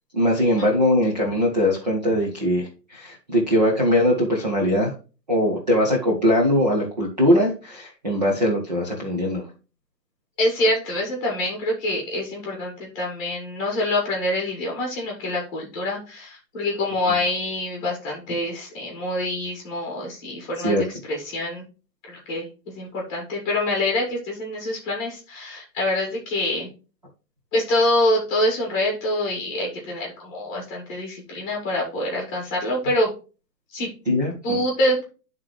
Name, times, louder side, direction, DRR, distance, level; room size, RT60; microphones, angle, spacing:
voice 1, 0.1-4.9 5.3-9.4 20.6-20.8 34.1-34.6, equal, 25° right, -2 dB, 0.7 m, -21 dB
voice 2, 10.4-20.8 21.0-21.6 22.1-26.7 27.5-33.1 33.7-33.9 34.4-35.0, left 1 dB, 15° left, -1 dB, 1.6 m, -25 dB
11.0 x 3.7 x 3.0 m, 0.34 s
hypercardioid pair, 180°, 49 cm